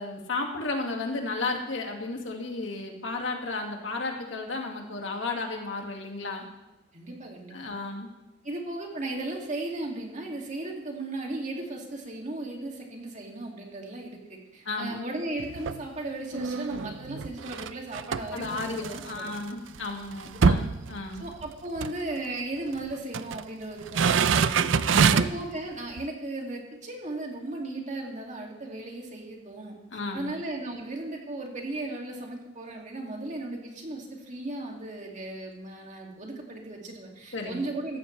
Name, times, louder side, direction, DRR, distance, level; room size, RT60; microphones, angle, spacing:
voice 1, 0.0-6.5 7.5-8.1 14.7-15.0 18.3-21.3 24.9-25.3 29.9-30.3 37.3-37.7, left 3 dB, 85° left, 2 dB, 2.0 m, -33 dB
voice 2, 6.9-7.7 8.4-19.4 20.3-20.7 21.2-24.7 25.1-29.7 30.1-38.0, right 2 dB, 40° right, 0 dB, 2.4 m, -36 dB
sound 1, 15.4-15.9 16.3-19.4 19.7-19.8 20.1-21.5 21.8-22.0 22.8-23.4 23.8-25.5 26.0-26.1, right 6 dB, 90° right, 0.5 m, -25 dB
15.0 x 14.5 x 3.3 m, 1.0 s
head